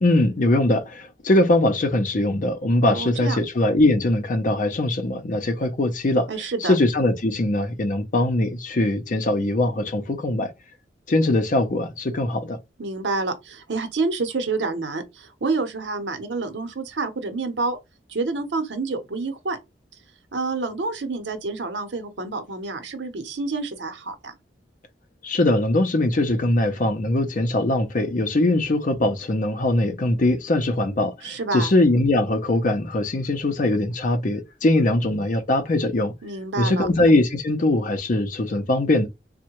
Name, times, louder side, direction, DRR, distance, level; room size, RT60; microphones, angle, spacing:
voice 1, 0.0-6.3 6.6-10.5 11.1-12.6 25.2-36.1 36.6-39.1, left 1 dB, 50° left, 0.6 m, -21 dB
voice 2, 2.8-3.4 6.3-6.7 12.8-17.8 18.1-19.6 20.3-24.3 31.2-31.7 36.2-36.9, right 3 dB, 75° right, 0.7 m, -28 dB
3.6 x 2.1 x 2.9 m
head